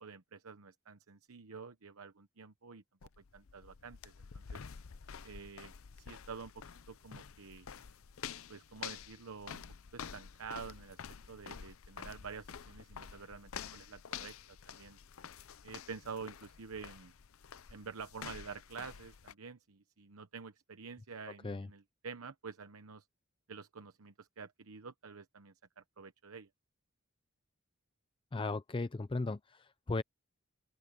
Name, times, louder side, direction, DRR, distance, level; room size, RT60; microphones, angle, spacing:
voice 1, 0.0-2.8 3.2-4.6 5.2-7.7 8.5-9.6 9.9-11.0 11.3-14.4 14.7-15.0 15.6-17.1 17.7-23.0 23.5-26.5, right 5 dB, 90° right, 0.9 m, -48 dB
sound 1, 3.0-19.3, left 7 dB, 70° left, 0.6 m, -49 dB
voice 2, 28.3-30.0, left 3 dB, 25° left, 0.4 m, -36 dB
open air
head